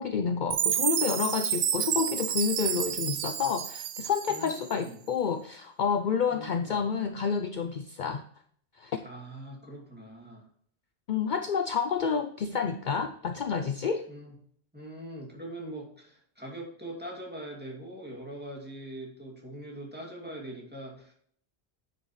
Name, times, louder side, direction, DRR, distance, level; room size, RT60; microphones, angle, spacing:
voice 1, 0.0-8.2 8.8-9.0 11.1-14.1, left 6 dB, 55° left, 8 dB, 0.7 m, -29 dB
Chime, 0.5-4.7, right 9 dB, 80° right, 1.0 m, -30 dB
voice 2, 4.3-5.0 6.3-6.8 9.0-10.5 14.1-14.3 14.7-21.1, right 1 dB, 10° right, -2 dB, 2.6 m, -42 dB
9.6 x 6.8 x 3.1 m, 0.62 s
omnidirectional pair, 1.1 m